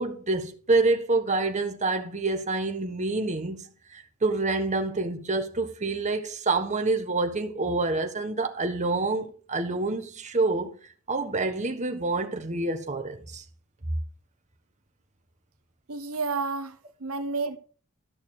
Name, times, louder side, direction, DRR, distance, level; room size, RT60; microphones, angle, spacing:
voice 1, 0.0-3.6 3.9-10.7 11.1-13.4, right 3 dB, 35° right, 1.4 m, -27 dB
voice 2, 15.9-17.6, right 4 dB, 75° right, 1.0 m, -31 dB
13.0 x 6.6 x 4.9 m
head